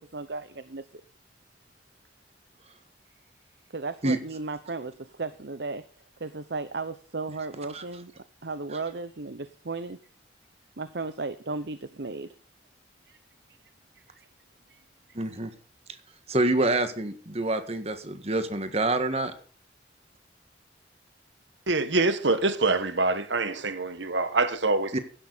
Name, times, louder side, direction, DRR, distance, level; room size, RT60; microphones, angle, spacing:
voice 1, 0.1-0.9 3.7-5.8 6.2-8.1 8.4-10.0 10.8-12.3 13.1-13.2 14.0-14.3 14.7-14.8, right 3 dB, 65° right, 0.8 m, -35 dB
voice 2, 15.2-15.5 16.3-19.3 24.9-25.0, right 2 dB, 35° right, 1.7 m, -26 dB
voice 3, 21.7-25.0, right 3 dB, 80° right, 1.4 m, -25 dB
16.0 x 11.5 x 4.1 m
head